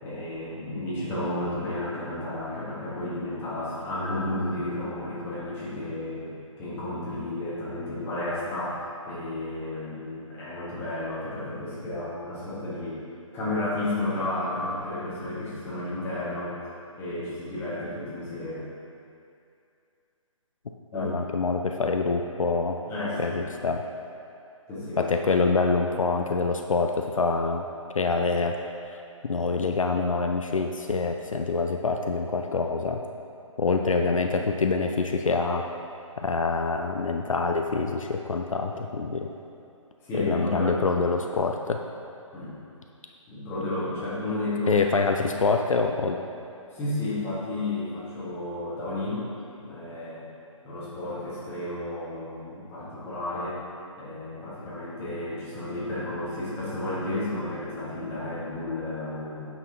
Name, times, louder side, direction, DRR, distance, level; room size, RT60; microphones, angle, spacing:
voice 1, 0.0-13.0 13.3-16.6 17.0-18.7 20.9-21.2 22.9-23.4 24.7-25.1 33.9-34.1 40.0-41.0 42.3-42.6 43.3-44.8 45.2-45.4 46.7-49.3 49.6-50.3 50.6-53.6 54.0-59.5, left 1 dB, 15° left, -10 dB, 1.5 m, -32 dB
voice 2, 20.9-22.8 23.2-23.8 25.0-27.6 28.0-28.5 29.2-33.0 33.6-35.6 36.2-39.3 40.2-41.8 44.7-46.2, left 4 dB, 70° left, 4 dB, 0.4 m, -25 dB
7.8 x 5.8 x 2.9 m, 2.6 s
figure-of-eight pair, 140°, 17 cm